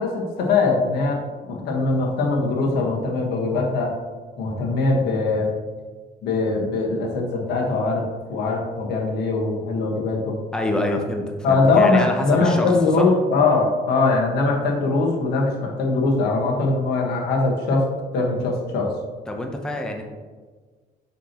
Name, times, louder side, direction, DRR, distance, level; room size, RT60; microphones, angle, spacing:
voice 1, 0.0-3.9 4.4-5.5 6.2-8.0 8.3-10.3 11.4-17.9 18.1-18.9, left 3 dB, 75° left, 0 dB, 1.4 m, -21 dB
voice 2, 10.5-13.1 19.3-20.0, left 1 dB, 5° left, 2 dB, 0.7 m, -26 dB
6.0 x 5.8 x 3.0 m, 1.4 s
cardioid pair, 110°, 17 cm